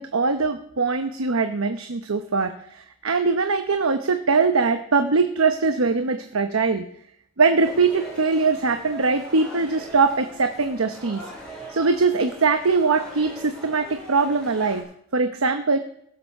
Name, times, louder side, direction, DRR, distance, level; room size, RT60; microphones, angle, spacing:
voice 1, 0.0-6.9 7.4-11.2 11.7-14.9 15.1-15.8, right 4 dB, 90° right, 7 dB, 0.9 m, -22 dB
sound 1, 7.6-14.8, right 1 dB, 5° left, 5.2 m, -41 dB
16.0 x 6.9 x 6.7 m, 0.71 s
head